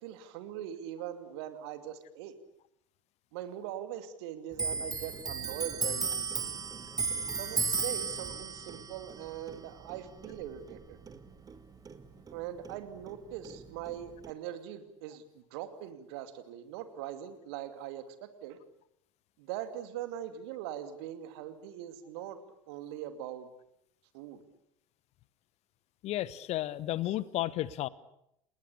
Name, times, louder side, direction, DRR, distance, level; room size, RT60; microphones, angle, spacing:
voice 1, 0.0-2.3 3.3-6.6 7.4-11.0 12.3-18.6 19.4-22.4 22.7-23.5 24.1-24.4, right 11 dB, 55° right, 10 dB, 2.7 m, -41 dB
Clock, 4.5-11.6 11.9-13.2 13.4-14.3, right 5 dB, 25° right, 2.1 m, -35 dB
voice 2, 26.0-27.9, left 14 dB, 45° left, 20 dB, 1.1 m, -33 dB
29.5 x 20.0 x 8.7 m, 0.79 s
figure-of-eight pair, 70°, 16 cm